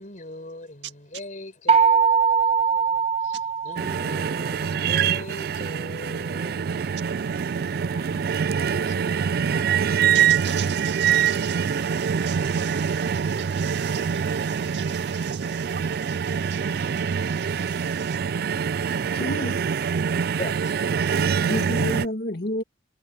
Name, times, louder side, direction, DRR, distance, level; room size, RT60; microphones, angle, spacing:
voice 1, 0.0-9.7 20.4-20.7, left 1 dB, 45° left, 6.6 m, -41 dB
sound 1, 1.7-4.5, right 6 dB, 35° right, 1.2 m, -21 dB
sound 2, 3.8-22.1, right 7 dB, 60° right, 0.4 m, -25 dB
voice 2, 10.1-18.2 21.0-21.2, right 10 dB, 85° right, 1.8 m, -40 dB
voice 3, 19.1-19.6 21.4-22.6, equal, 60° left, 2.1 m, -29 dB
head